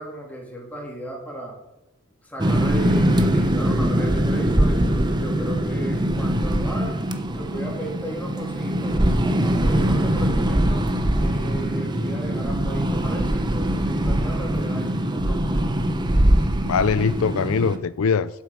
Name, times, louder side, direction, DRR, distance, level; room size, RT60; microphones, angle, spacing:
voice 1, 0.0-1.6 2.2-7.0 7.3-10.8 11.2-15.7, right 1 dB, 5° left, -2 dB, 3.0 m, -36 dB
sound 1, 2.4-17.8, right 1 dB, 20° right, 0.8 m, -22 dB
voice 2, 10.9-11.2 11.6-11.8 16.6-18.3, left 5 dB, 80° left, 15 dB, 0.5 m, -23 dB
11.5 x 8.4 x 6.2 m, 0.92 s
head